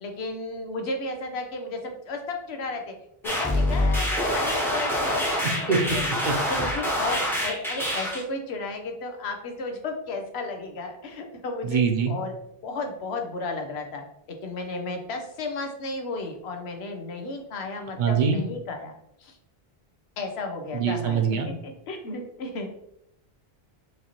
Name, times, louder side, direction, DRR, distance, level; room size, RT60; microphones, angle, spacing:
voice 1, 0.0-3.0 3.2-6.2 6.5-11.8 12.1-12.3 12.6-14.0 14.3-19.4 20.2-21.2 21.6-22.7, left 3 dB, 90° left, 4 dB, 1.0 m, -33 dB
sound 1, 3.2-8.2, left 1 dB, 5° left, 0.7 m, -26 dB
voice 2, 11.6-12.1 18.0-18.4 20.7-21.5, right 6 dB, 55° right, 4 dB, 0.7 m, -23 dB
4.9 x 2.7 x 2.9 m, 0.77 s
omnidirectional pair, 1.0 m